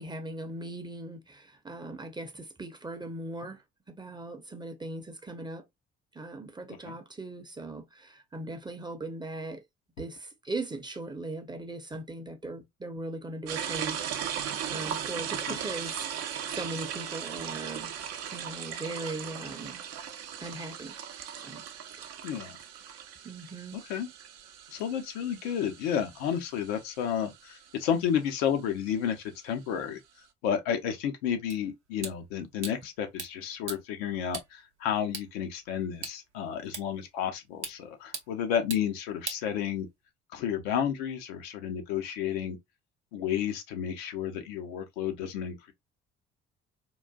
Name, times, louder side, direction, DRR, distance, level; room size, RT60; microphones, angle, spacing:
voice 1, 0.0-3.6 3.9-5.6 6.1-9.6 10.0-17.9 18.3-19.8 20.4-21.0 21.3-21.6 23.2-23.8, right 2 dB, 15° right, 0.7 m, -39 dB
sound 1, 13.5-27.8, right 9 dB, 50° right, 0.6 m, -38 dB
voice 2, 22.2-22.6 23.7-24.1 24.7-30.0 30.4-39.9 40.3-42.6 43.1-45.7, left 8 dB, 65° left, 0.7 m, -31 dB
sound 2, 31.5-40.1, right 5 dB, 90° right, 0.6 m, -44 dB
3.8 x 2.4 x 2.2 m
figure-of-eight pair, 50°, 33 cm